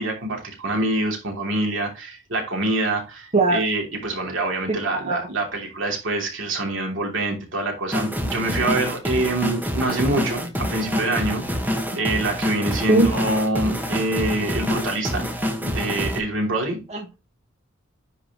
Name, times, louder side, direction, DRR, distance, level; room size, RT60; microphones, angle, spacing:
voice 1, 0.0-11.7 12.0-15.3 15.6-16.8, right 2 dB, 70° right, 3.1 m, -25 dB
voice 2, 3.3-3.6 4.9-5.2 11.1-11.2 11.9-12.1 12.9-13.1 16.9-17.2, right 2 dB, 35° right, 1.3 m, -21 dB
sound 1, 7.9-16.2, equal, 10° right, 1.3 m, -26 dB
10.0 x 5.0 x 3.0 m
head